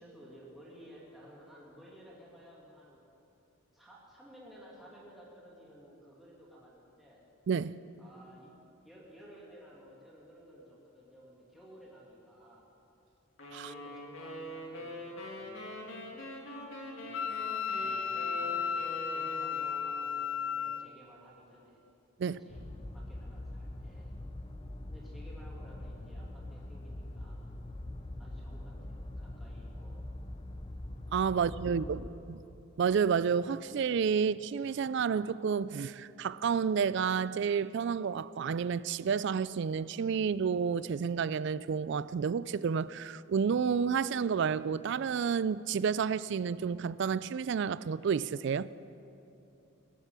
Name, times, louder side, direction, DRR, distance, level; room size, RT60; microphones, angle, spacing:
voice 1, 0.0-3.0 3.7-7.2 8.0-8.5 8.8-12.7 13.6-16.1 17.0-21.8 22.2-22.7 22.9-24.1 24.9-27.5 28.2-30.1 31.3-32.4, equal, ahead, 2.4 m, -55 dB
voice 2, 7.5-7.8 13.5-13.7 22.2-22.4 31.1-32.4 32.8-48.7, right 6 dB, 60° right, 0.3 m, -30 dB
sound 1, 13.4-20.6, left 1 dB, 70° left, 2.3 m, -44 dB
Wind instrument woodwind instrument, 17.1-20.9, left 6 dB, 85° left, 0.5 m, -34 dB
sound 2, 22.5-32.1, left 1 dB, 25° left, 0.7 m, -43 dB
20.0 x 8.2 x 7.5 m
head